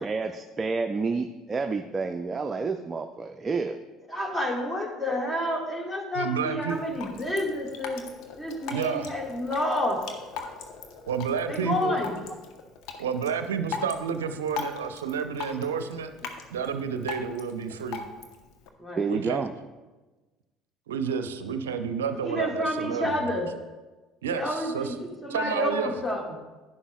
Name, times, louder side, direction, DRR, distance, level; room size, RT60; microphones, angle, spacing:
voice 1, 0.0-3.8 19.0-19.5, right 4 dB, 25° right, 7 dB, 0.5 m, -29 dB
voice 2, 4.1-8.1 8.4-10.0 11.5-12.2 18.8-19.0 22.2-23.5 24.3-26.2, left 1 dB, 15° left, 2 dB, 1.8 m, -29 dB
voice 3, 6.1-6.8 8.7-9.1 11.1-12.0 13.0-16.1 16.5-18.0 19.1-19.5 20.9-23.4 24.2-24.9 25.3-25.9, right 6 dB, 80° right, 9 dB, 0.5 m, -30 dB
Drip, 6.7-18.7, left 5 dB, 60° left, 0.9 m, -40 dB
11.0 x 9.8 x 2.3 m, 1.2 s
figure-of-eight pair, 60°, 0 cm